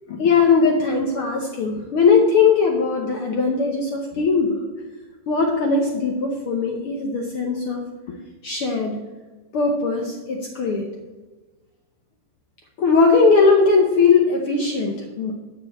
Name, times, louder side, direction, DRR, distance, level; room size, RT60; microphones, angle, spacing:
voice 1, 0.2-4.6 5.3-7.8 8.1-8.2 8.4-9.0 9.5-10.9 12.8-15.3, left 4 dB, 70° left, 1 dB, 1.3 m, -19 dB
8.6 x 5.3 x 7.5 m, 1.2 s
omnidirectional pair, 3.5 m